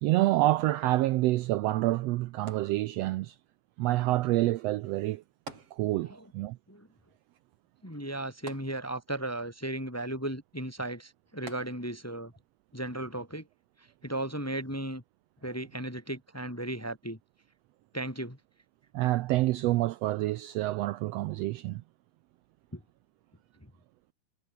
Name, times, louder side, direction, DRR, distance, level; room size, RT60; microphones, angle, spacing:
voice 1, 0.0-3.3 3.8-5.2 5.7-6.6 18.9-21.8, right 17 dB, 85° right, 1.4 m, -27 dB
sound 1, 2.5-3.4 5.5-6.3 6.6-6.7 8.5-9.3 11.5-12.2 12.9-13.0, right 3 dB, 45° right, 6.6 m, -48 dB
voice 2, 7.8-12.3 12.7-13.5 14.0-15.0 15.4-17.2 17.9-18.4 22.7-22.8 23.6-23.7, right 1 dB, 5° left, 1.5 m, -35 dB
omnidirectional pair, 3.5 m